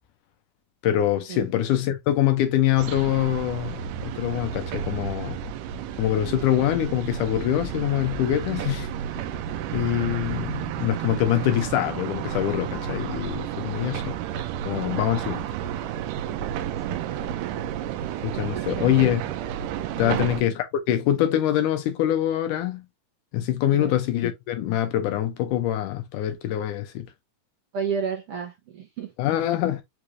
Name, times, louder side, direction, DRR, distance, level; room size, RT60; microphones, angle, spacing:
voice 1, 0.8-5.4 6.0-8.9 9.7-14.2 14.7-15.4 18.2-19.3 20.0-22.8 23.3-27.1 29.2-29.8, left 12 dB, 80° left, 2.2 m, -24 dB
sound 1, 2.8-20.4, right 9 dB, 85° right, 2.1 m, -31 dB
voice 2, 16.8-17.2 18.5-18.9 20.0-20.3 23.7-24.0 27.7-29.1, right 6 dB, 65° right, 1.6 m, -32 dB
5.8 x 3.2 x 2.6 m
omnidirectional pair, 3.8 m